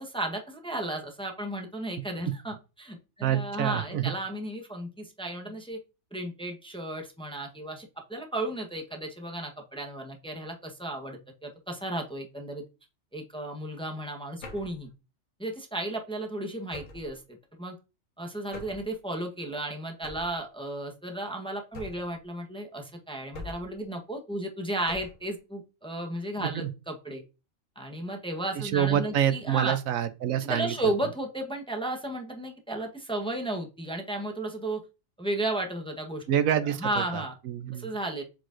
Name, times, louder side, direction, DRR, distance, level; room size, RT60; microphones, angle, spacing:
voice 1, 0.0-5.8 6.1-12.6 13.1-14.9 15.4-17.8 18.2-27.2 27.8-29.8 30.4-34.8 35.2-36.2 36.6-37.3 37.8-38.2, right 1 dB, 5° left, 0.9 m, -34 dB
voice 2, 3.2-4.1 26.5-26.7 28.6-30.9 36.3-37.9, right 10 dB, 80° right, 1.1 m, -27 dB
sound 1, 14.4-14.8 16.7-17.2 18.5-18.9 20.0-20.4 21.7-22.2 23.3-23.8 24.9-25.3, left 3 dB, 70° left, 1.7 m, -43 dB
7.7 x 4.8 x 2.5 m
omnidirectional pair, 1.4 m